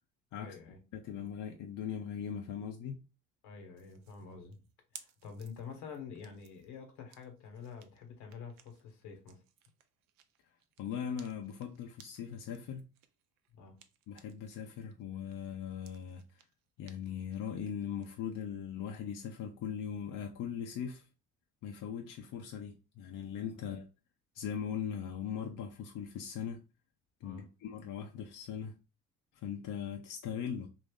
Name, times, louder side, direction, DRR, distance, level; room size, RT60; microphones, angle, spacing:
voice 1, 0.4-0.8 3.4-4.6 4.9-9.4 13.5-13.8 27.2-27.4, left 5 dB, 70° left, 1.2 m, -47 dB
voice 2, 0.9-3.0 10.8-12.9 14.1-16.2 16.8-21.1 21.6-23.9 24.3-26.6 27.2-28.8 29.3-30.7, left 8 dB, 50° left, 0.7 m, -40 dB
sound 1, 3.8-14.6 14.9-18.1, right 10 dB, 70° right, 0.6 m, -60 dB
2.9 x 2.6 x 3.5 m
hypercardioid pair, 55°, 41 cm